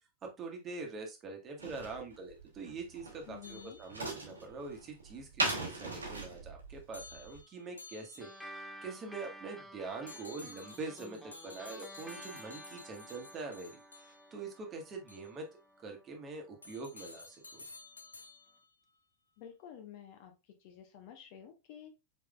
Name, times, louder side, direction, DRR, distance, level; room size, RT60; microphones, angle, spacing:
voice 1, 0.2-8.3 8.8-15.5 15.8-17.6, right 3 dB, 25° right, 2 dB, 1.3 m, -44 dB
sound 1, 1.6-7.4, right 2 dB, 75° right, 1.1 m, -39 dB
voice 2, 3.2-3.8 19.4-20.3 20.6-21.9, left 9 dB, 45° left, 5 dB, 1.0 m, -51 dB
sound 2, 3.4-4.4 6.9-8.7 10.1-14.4 15.1-15.3 16.6-18.7, left 3 dB, 80° left, 0.4 m, -53 dB
sound 3, 8.2-17.0, right 1 dB, ahead, 0.7 m, -52 dB
5.0 x 4.3 x 2.3 m, 0.25 s
figure-of-eight pair, 90°, 0 cm